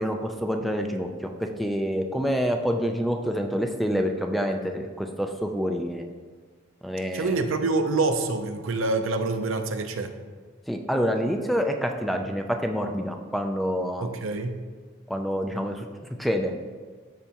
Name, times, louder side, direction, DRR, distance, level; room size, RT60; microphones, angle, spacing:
voice 1, 0.0-6.0 6.8-7.4 10.7-14.1 15.1-15.9 16.2-16.5, equal, ahead, 4 dB, 0.4 m, -27 dB
voice 2, 7.1-10.1 14.0-14.6, right 3 dB, 75° right, 7 dB, 0.6 m, -26 dB
12.5 x 4.6 x 2.9 m, 1.5 s
head